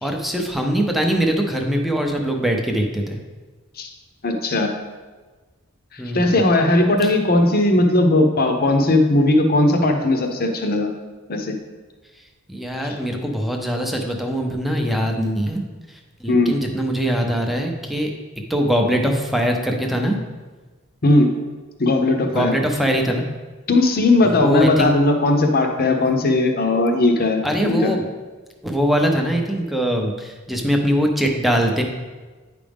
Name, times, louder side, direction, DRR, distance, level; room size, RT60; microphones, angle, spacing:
voice 1, 0.0-3.2 6.0-6.3 7.0-7.1 12.5-15.6 16.2-18.1 18.5-20.2 22.3-23.2 24.2-24.9 27.4-28.0 28.6-31.8, equal, ahead, 2 dB, 0.7 m, -22 dB
voice 2, 4.2-4.7 5.9-10.9 11.3-11.5 16.3-16.5 21.0-21.3 21.8-22.5 23.7-27.9, left 2 dB, 45° left, 4 dB, 0.8 m, -18 dB
9.6 x 5.0 x 3.5 m, 1.3 s
head